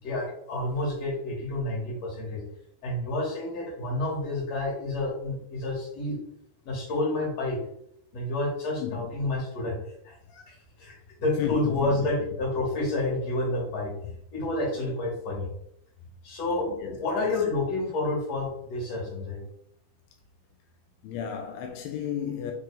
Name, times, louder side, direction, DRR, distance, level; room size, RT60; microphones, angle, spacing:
voice 1, 0.0-2.4 2.8-6.2 6.6-7.6 8.1-9.8 10.0-13.9 14.3-15.5 16.2-16.7 17.0-19.5, left 2 dB, 45° left, 3.7 m, -29 dB
voice 2, 11.4-12.0 16.7-17.3 21.0-22.5, left 8 dB, 85° left, 2.8 m, -33 dB
6.5 x 4.5 x 5.1 m
omnidirectional pair, 4.3 m